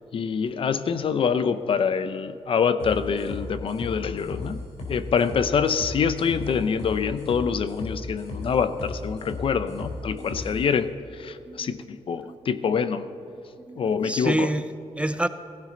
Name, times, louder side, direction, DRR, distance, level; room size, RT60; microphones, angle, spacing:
voice 1, 0.1-4.6 4.9-13.1 13.8-14.5, left 6 dB, 50° left, 12 dB, 0.6 m, -25 dB
sound 1, 2.8-10.6, left 2 dB, 80° left, 3.4 m, -36 dB
voice 2, 12.1-12.7 13.7-15.3, right 1 dB, 10° right, 11 dB, 0.4 m, -29 dB
16.0 x 15.5 x 3.9 m, 2.7 s
wide cardioid pair, 130°, 11 cm